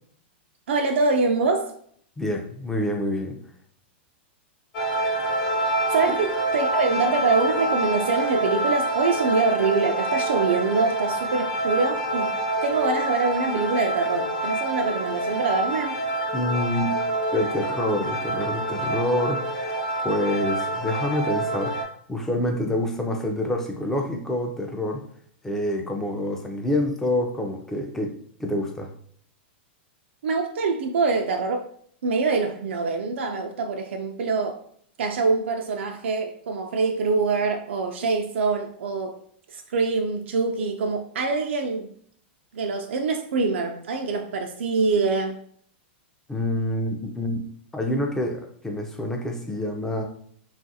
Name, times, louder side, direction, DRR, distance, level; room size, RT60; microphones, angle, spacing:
voice 1, 0.7-1.7 5.9-12.3 12.6-16.0 30.2-31.6 32.0-34.6 35.0-39.2 39.5-41.9 42.5-45.4, right 4 dB, 85° right, 3 dB, 0.4 m, -24 dB
voice 2, 2.2-3.4 6.1-6.2 16.3-16.9 17.3-21.7 22.1-25.0 25.4-28.1 28.4-28.9 46.3-47.4 47.7-50.0, left 1 dB, 5° left, 2 dB, 0.4 m, -27 dB
sound 1, 4.7-21.8, right 1 dB, 40° left, 0.8 m, -27 dB
2.9 x 2.4 x 2.7 m, 0.62 s
supercardioid pair, 150°, 6 cm